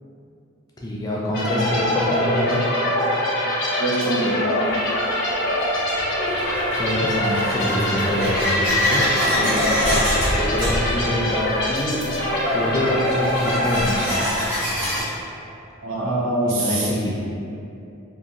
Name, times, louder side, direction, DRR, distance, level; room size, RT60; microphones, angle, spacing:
voice 1, 0.8-2.6 6.8-9.1 9.4-9.5 10.4-12.1 12.5-14.2 16.5-17.2, left 1 dB, 20° left, -5 dB, 0.3 m, -25 dB
sound 1, 1.3-14.9, left 1 dB, 55° left, 0.7 m, -24 dB
voice 2, 3.8-4.5 9.4-9.8 15.8-16.9, right 1 dB, 75° right, -5 dB, 0.6 m, -24 dB
sound 2, 4.7-4.8 5.6-15.0, left 1 dB, 10° right, 1.2 m, -25 dB
2.8 x 2.5 x 2.5 m, 2.6 s
head